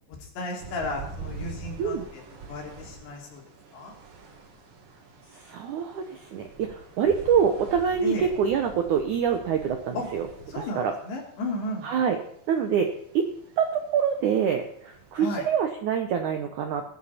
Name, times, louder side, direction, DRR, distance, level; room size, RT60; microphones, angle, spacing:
voice 1, 0.1-2.2 2.5-3.4 3.7-3.9 8.0-8.3 10.0-10.1 10.5-12.0 15.2-15.5, left 1 dB, 85° left, 0 dB, 5.5 m, -34 dB
sound 1, 0.6-15.5, right 4 dB, 60° right, 3.8 m, -45 dB
voice 2, 5.3-10.3 10.5-10.9 11.8-12.2 12.5-12.9 13.1-13.3 13.6-16.8, right 7 dB, 75° right, 5 dB, 1.8 m, -25 dB
19.5 x 11.0 x 4.3 m, 0.67 s
omnidirectional pair, 4.9 m